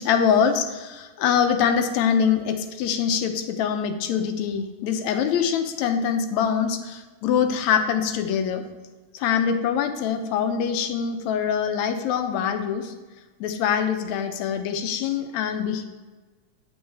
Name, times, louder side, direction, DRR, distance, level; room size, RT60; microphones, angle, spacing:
voice 1, 0.0-8.6 9.1-12.9 13.4-15.9, left 7 dB, 80° left, 7 dB, 2.0 m, -24 dB
8.6 x 8.5 x 3.4 m, 1.3 s
omnidirectional pair, 3.3 m